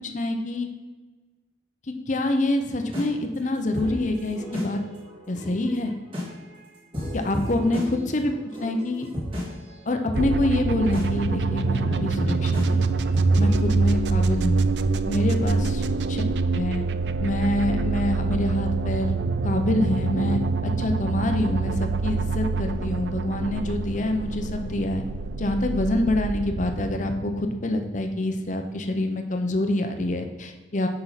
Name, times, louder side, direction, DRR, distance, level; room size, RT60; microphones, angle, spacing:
voice 1, 0.1-0.7 2.1-4.8 5.3-5.9 7.1-8.3 8.6-9.1 9.9-12.8 13.4-14.6 15.1-15.8 16.1-16.2 16.5-16.8 17.2-19.2 19.4-25.0 25.4-30.9, left 1 dB, 45° left, 5 dB, 0.8 m, -26 dB
sound 1, 2.7-13.7, left 1 dB, 30° right, 2.4 m, -35 dB
sound 2, 10.1-27.9, right 3 dB, 75° right, 0.4 m, -25 dB
8.9 x 5.5 x 4.1 m, 1.3 s
head